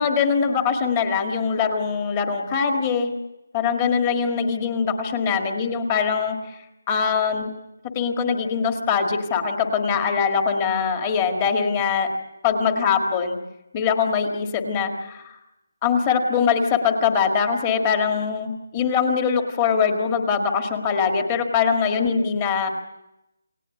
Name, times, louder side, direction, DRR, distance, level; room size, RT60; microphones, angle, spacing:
voice 1, 0.0-3.1 3.5-6.6 6.9-7.5 7.9-12.1 12.4-13.4 13.7-15.3 15.8-22.7, left 6 dB, 15° left, 5 dB, 1.7 m, -22 dB
28.5 x 18.5 x 9.6 m, 0.92 s
hypercardioid pair, 180°, 0 cm